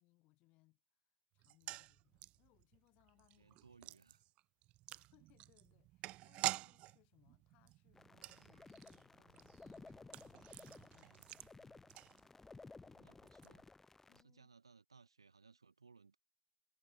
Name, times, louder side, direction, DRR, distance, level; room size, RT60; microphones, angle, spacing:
voice 1, 0.0-4.0 4.9-11.8 14.1-14.5, left 21 dB, 50° left, 2.4 m, -74 dB
sound 1, 1.4-12.6 12.9-13.0 13.3-13.5, right 18 dB, 45° right, 0.5 m, -48 dB
voice 2, 3.4-4.2 12.7-13.6 14.1-16.2, right 4 dB, 85° right, 1.0 m, -65 dB
sound 2, 7.9-14.2, left 3 dB, 15° left, 0.5 m, -58 dB
figure-of-eight pair, 75°, 3 cm